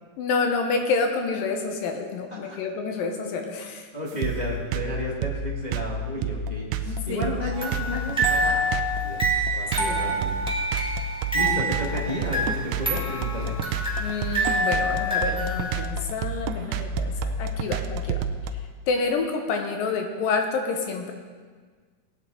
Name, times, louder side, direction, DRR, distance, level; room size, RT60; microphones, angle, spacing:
voice 1, 0.2-3.9 6.9-7.2 9.8-10.0 14.0-18.2 18.9-21.1, left 4 dB, 85° left, 3 dB, 2.9 m, -28 dB
voice 2, 3.9-10.8 11.3-13.6, left 1 dB, 40° left, -5 dB, 0.5 m, -33 dB
sound 1, 4.2-18.5, right 5 dB, 85° right, 2.4 m, -29 dB
sound 2, 7.5-15.8, right 1 dB, 5° right, 1.0 m, -27 dB
18.0 x 8.9 x 4.0 m, 1.6 s
omnidirectional pair, 4.0 m